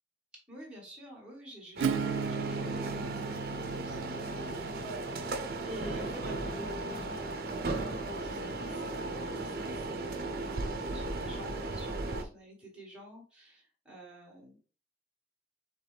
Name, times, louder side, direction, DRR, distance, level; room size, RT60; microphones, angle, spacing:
voice 1, 0.5-5.0 5.6-14.6, equal, 5° right, -4 dB, 1.8 m, -49 dB
sound 1, 1.8-12.2, right 2 dB, 50° right, 0.6 m, -36 dB
Acoustic guitar / Strum, 1.8-7.3, right 6 dB, 85° right, 0.3 m, -37 dB
4.6 x 3.5 x 3.3 m, 0.39 s
head